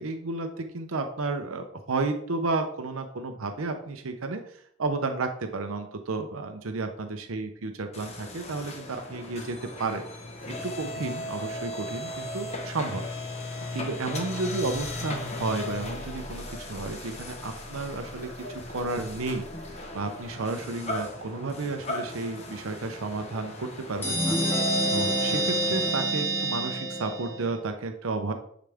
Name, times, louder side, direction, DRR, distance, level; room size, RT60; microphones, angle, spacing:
voice 1, 0.0-10.0 10.6-13.1 13.7-18.3 18.7-19.4 19.9-28.3, right 3 dB, 85° right, 6 dB, 0.7 m, -32 dB
sound 1, 7.9-25.9, left 2 dB, 30° left, 1.2 m, -37 dB
sound 2, 24.0-27.6, right 1 dB, 10° left, 2.2 m, -27 dB
10.0 x 4.9 x 3.5 m, 0.67 s
head